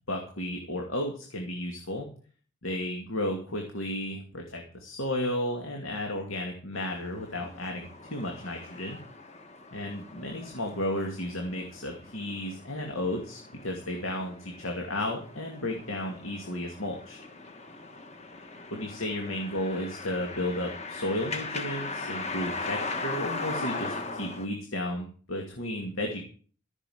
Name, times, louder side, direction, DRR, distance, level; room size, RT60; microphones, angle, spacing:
voice 1, 0.1-2.1 2.6-9.0 9.7-17.2 18.7-26.2, left 1 dB, 80° left, 1 dB, 2.4 m, -33 dB
sound 1, 6.7-24.5, left 3 dB, 30° left, 1.4 m, -39 dB
14.5 x 6.7 x 7.9 m, 0.43 s
head